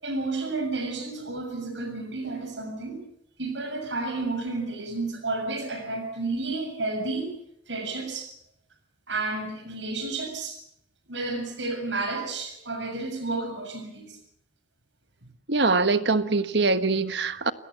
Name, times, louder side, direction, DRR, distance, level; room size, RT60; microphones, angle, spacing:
voice 1, 0.0-3.0 3.4-7.4 7.7-8.3 9.1-10.6 11.1-14.2 15.2-15.3, right 3 dB, 90° right, 6.9 m, -31 dB
voice 2, 15.5-17.5, right 3 dB, 70° right, 1.4 m, -23 dB
29.5 x 19.5 x 6.9 m
head